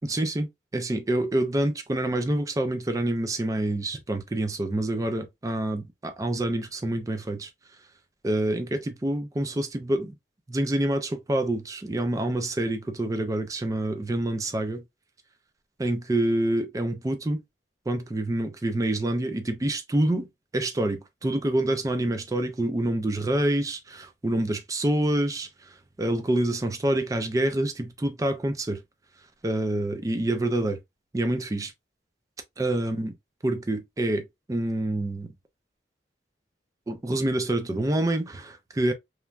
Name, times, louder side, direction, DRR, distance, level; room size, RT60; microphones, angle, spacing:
voice 1, 0.0-7.5 8.2-10.1 10.5-14.8 15.8-17.4 17.9-20.3 20.5-28.8 29.4-30.8 31.1-31.7 32.6-33.1 33.4-35.3 36.9-38.9, right 1 dB, 20° right, 0.4 m, -27 dB
3.1 x 2.2 x 2.3 m
head